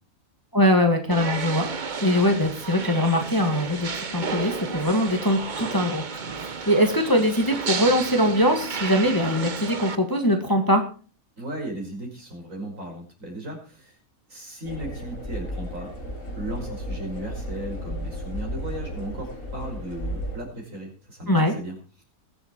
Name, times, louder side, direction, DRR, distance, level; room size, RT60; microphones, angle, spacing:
voice 1, 0.5-1.7 2.0-10.9 21.3-21.5, equal, 15° left, 4 dB, 1.9 m, -22 dB
sound 1, 1.1-10.0, right 5 dB, 35° right, 1.0 m, -32 dB
voice 2, 11.4-14.0 14.3-15.9 16.4-22.0, right 1 dB, 60° right, 1 dB, 5.7 m, -36 dB
sound 2, 14.6-20.4, equal, 70° left, 5.0 m, -33 dB
21.0 x 7.7 x 4.6 m, 0.37 s
omnidirectional pair, 1.5 m